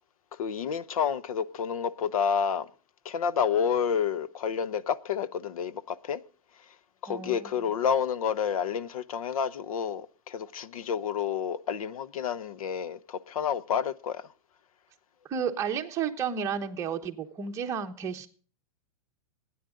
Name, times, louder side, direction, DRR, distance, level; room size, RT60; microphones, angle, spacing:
voice 1, 0.3-2.7 3.0-6.2 7.0-14.2, left 7 dB, 80° left, 0.9 m, -29 dB
voice 2, 7.1-7.5 15.3-18.3, right 7 dB, 15° right, 1.1 m, -32 dB
21.0 x 9.9 x 3.8 m
supercardioid pair, 165°, 18 cm